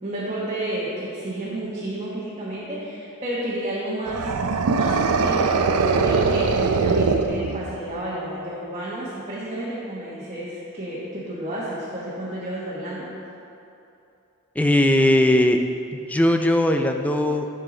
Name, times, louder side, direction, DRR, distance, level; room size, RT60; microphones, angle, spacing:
voice 1, 0.0-4.3 4.7-5.5 5.9-13.1, right 1 dB, 30° right, -8 dB, 1.3 m, -31 dB
sound 1, 4.1-7.9, right 4 dB, 90° right, 0.5 m, -21 dB
voice 2, 14.6-15.6 15.9-17.5, left 1 dB, 5° left, 5 dB, 0.4 m, -19 dB
11.0 x 5.7 x 3.9 m, 2.8 s
head